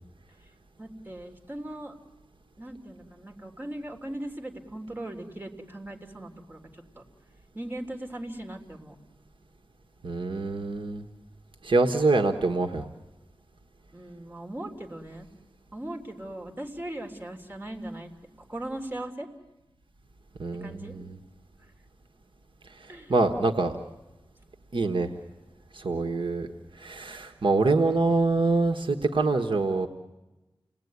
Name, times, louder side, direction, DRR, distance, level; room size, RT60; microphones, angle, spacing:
voice 1, 0.8-2.0 2.6-7.0 7.5-9.0 13.9-15.3 15.7-18.1 18.5-19.3 20.5-21.0 21.6-21.7 22.9-23.1, right 1 dB, 25° right, 2 dB, 3.3 m, -39 dB
voice 2, 10.0-11.0 11.6-12.8 20.4-21.0 22.8-23.8 24.7-25.1 25.7-26.5 26.7-29.9, right 3 dB, 65° right, 4 dB, 1.4 m, -25 dB
29.5 x 19.5 x 9.6 m, 1.1 s
wide cardioid pair, 80°, 9 cm